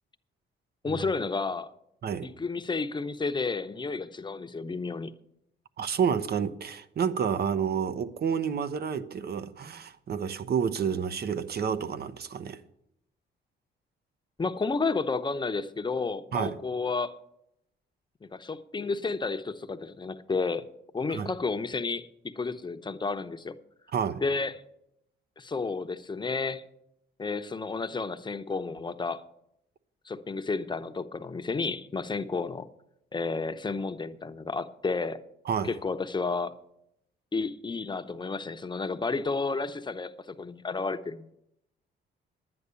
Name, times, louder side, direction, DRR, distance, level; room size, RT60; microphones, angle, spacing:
voice 1, 0.8-1.7 2.2-5.1 14.4-17.2 18.3-20.6 20.9-23.6 24.2-24.5 25.4-26.6 27.2-29.2 30.1-32.7 33.1-35.2 35.6-36.5 37.3-41.3, left 4 dB, 20° left, 0.8 m, -31 dB
voice 2, 5.8-12.6 16.3-16.6 21.1-21.3 23.9-24.2 35.5-35.7, right 7 dB, 55° right, 0.9 m, -29 dB
10.5 x 9.8 x 6.9 m
cardioid pair, 90°, 20 cm